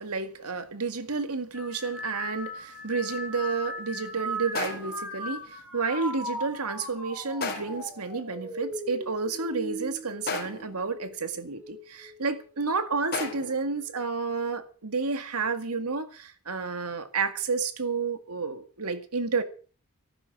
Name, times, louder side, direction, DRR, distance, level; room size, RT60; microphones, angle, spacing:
voice 1, 0.0-19.4, right 4 dB, 85° right, 1.9 m, -31 dB
sound 1, 1.5-11.1 11.6-12.2 13.1-13.5, equal, 10° right, 4.7 m, -38 dB
sound 2, 2.3-2.4 4.5-5.1 7.4-8.0 10.3-10.8 13.1-13.7, left 4 dB, 45° left, 3.7 m, -34 dB
14.5 x 12.0 x 6.0 m
head